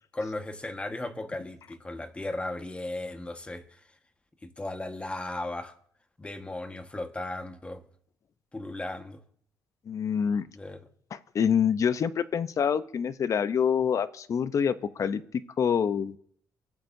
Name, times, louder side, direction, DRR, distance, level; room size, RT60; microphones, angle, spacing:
voice 1, 0.1-3.8 4.4-5.7 6.2-7.8 8.5-9.2 10.5-10.8, left 2 dB, 15° left, 1.5 m, -36 dB
voice 2, 9.9-10.5 11.1-15.2 15.6-16.2, left 7 dB, 50° left, 0.8 m, -26 dB
24.0 x 13.0 x 2.7 m
cardioid pair, 95°, 7 cm